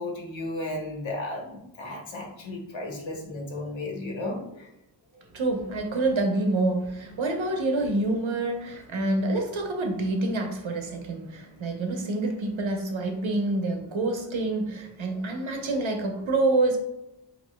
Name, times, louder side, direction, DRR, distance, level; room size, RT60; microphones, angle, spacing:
voice 1, 0.0-4.7, left 2 dB, 80° left, 1.3 m, -34 dB
voice 2, 5.3-16.8, right 2 dB, 85° right, 1.0 m, -27 dB
8.0 x 2.9 x 2.2 m
wide cardioid pair, 85°, 45 cm